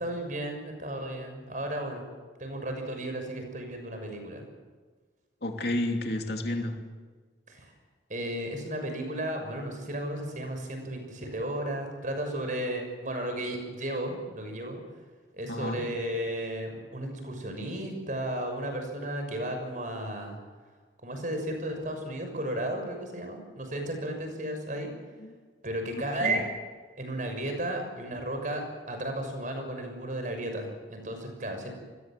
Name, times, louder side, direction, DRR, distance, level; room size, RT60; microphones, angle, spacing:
voice 1, 0.0-2.0 2.4-4.4 7.5-7.7 8.1-14.8 15.3-20.4 21.0-24.9 25.6-26.4 27.0-31.7, right 1 dB, 45° right, 5 dB, 6.4 m, -34 dB
voice 2, 5.4-6.7 15.5-15.8 25.2-25.4 26.2-26.4, left 1 dB, 60° left, 3 dB, 2.9 m, -31 dB
28.5 x 21.5 x 7.6 m, 1.4 s
head